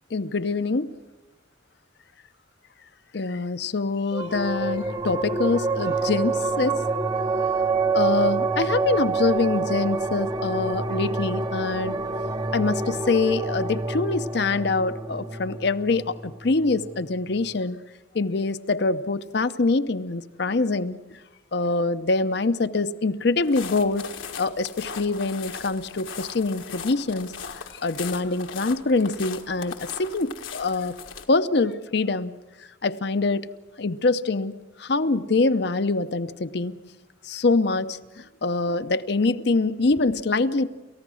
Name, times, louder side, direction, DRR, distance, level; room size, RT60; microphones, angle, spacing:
voice 1, 0.1-0.9 3.1-6.8 7.9-12.0 12.5-17.8 18.1-21.0 21.5-24.1 24.4-27.3 27.7-31.0 31.3-32.4 32.8-33.5 33.8-34.5 34.8-36.8 37.2-40.7, left 3 dB, 55° left, 11 dB, 0.7 m, -24 dB
sound 1, 4.1-17.0, right 4 dB, 20° right, 0.7 m, -27 dB
sound 2, 23.4-31.3, left 6 dB, 80° left, 1.6 m, -39 dB
29.0 x 14.5 x 6.3 m, 1.1 s
head